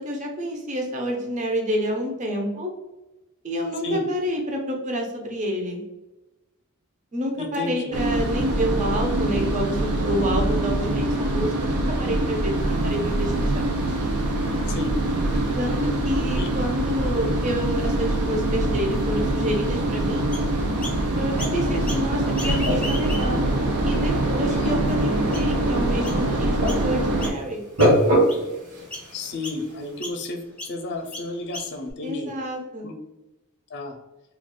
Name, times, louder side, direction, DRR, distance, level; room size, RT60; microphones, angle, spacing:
voice 1, 0.0-2.7 3.4-5.8 7.1-13.7 15.6-20.3 21.2-23.4 23.8-27.6 32.0-32.9, equal, 35° right, 1 dB, 0.6 m, -28 dB
voice 2, 7.4-8.0 14.7-14.9 16.3-16.5 24.5-24.8 29.1-32.3 32.8-32.9 33.7-34.0, left 2 dB, 50° left, 4 dB, 0.5 m, -32 dB
sound 1, 7.9-27.3, right 1 dB, 90° right, 0.5 m, -24 dB
sound 2, 12.5-30.1, equal, 75° right, 1.1 m, -30 dB
Chirp tweet, 20.3-21.0 21.4-22.0 22.3-23.5 24.1-24.2 24.8-24.9 25.3-25.6 26.0-26.2 26.7-26.9 27.2-27.5 27.8-28.5 28.9-29.1 29.4-29.6 30.0-30.2 30.6-30.7 31.1-31.9, left 2 dB, 5° left, 0.6 m, -36 dB
2.4 x 2.4 x 3.6 m, 1.0 s
head